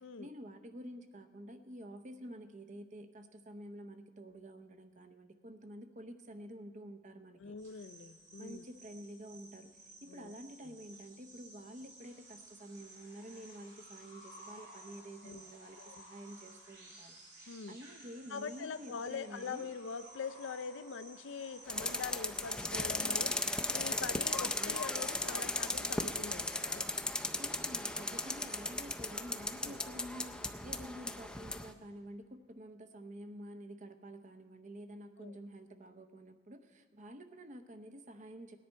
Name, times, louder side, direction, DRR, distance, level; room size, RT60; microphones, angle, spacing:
voice 1, 0.2-7.5 8.4-9.7 10.0-19.7 24.4-24.8 27.4-38.6, right 1 dB, 40° right, 9 dB, 0.7 m, -49 dB
voice 2, 7.4-8.6 10.1-10.3 10.6-10.7 15.2-15.4 15.8-16.0 17.5-17.8 18.3-26.9 29.6-29.8 35.2-35.4, left 5 dB, 85° left, 12 dB, 0.5 m, -43 dB
sound 1, 7.6-25.8, right 2 dB, 65° right, 3.5 m, -57 dB
sound 2, 12.0-29.5, equal, 85° right, 4.4 m, -61 dB
sound 3, 21.7-31.7, left 2 dB, 5° left, 0.4 m, -36 dB
18.5 x 10.0 x 4.5 m, 1.5 s
head